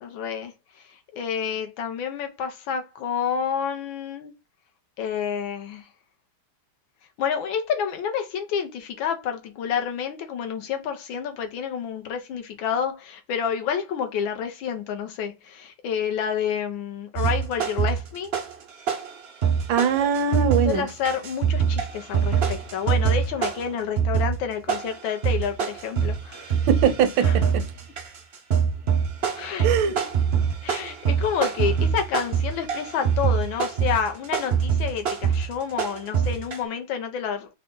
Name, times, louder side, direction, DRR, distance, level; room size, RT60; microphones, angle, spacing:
voice 1, 0.0-4.3 5.0-5.9 7.2-18.3 20.0-20.1 20.6-26.5 27.2-27.4 29.3-29.7 30.6-37.6, left 7 dB, 75° left, 1.5 m, -29 dB
sound 1, 17.2-18.6 18.9-36.6, right 7 dB, 55° right, 0.7 m, -24 dB
voice 2, 19.7-20.9 26.7-27.6 29.6-30.1, right 7 dB, 80° right, 1.3 m, -22 dB
3.9 x 2.2 x 3.7 m
omnidirectional pair, 2.2 m